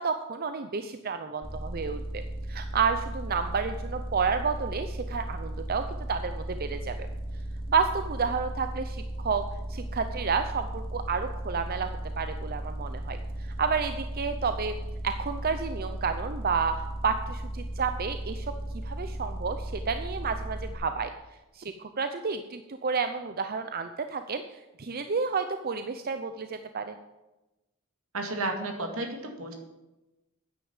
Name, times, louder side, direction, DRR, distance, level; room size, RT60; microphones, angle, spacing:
voice 1, 0.0-2.2 2.5-7.0 7.7-9.4 9.7-11.9 12.2-14.7 15.0-18.5 18.8-21.1 21.5-24.4 24.8-27.0, right 5 dB, 45° right, 8 dB, 0.6 m, -30 dB
sound 1, 1.4-20.7, right 1 dB, 25° right, 2.9 m, -36 dB
voice 2, 28.1-29.5, right 2 dB, 80° right, 3 dB, 2.2 m, -32 dB
9.7 x 9.5 x 7.2 m, 1.0 s
head